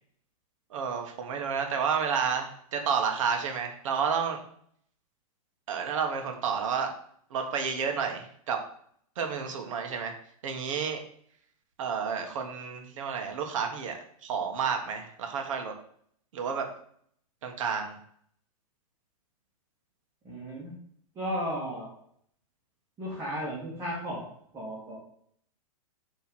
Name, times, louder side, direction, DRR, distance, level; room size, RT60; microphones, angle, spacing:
voice 1, 0.7-4.4 5.7-6.9 7.3-8.6 9.1-10.1 10.4-11.0 11.8-15.7 16.3-16.7 17.4-18.0, right 6 dB, 60° right, 4 dB, 1.6 m, -30 dB
voice 2, 20.2-20.8 21.2-21.9 23.0-24.3 24.5-25.0, equal, 15° right, -8 dB, 1.9 m, -34 dB
7.3 x 3.5 x 6.2 m, 0.64 s
supercardioid pair, 165°, 18 cm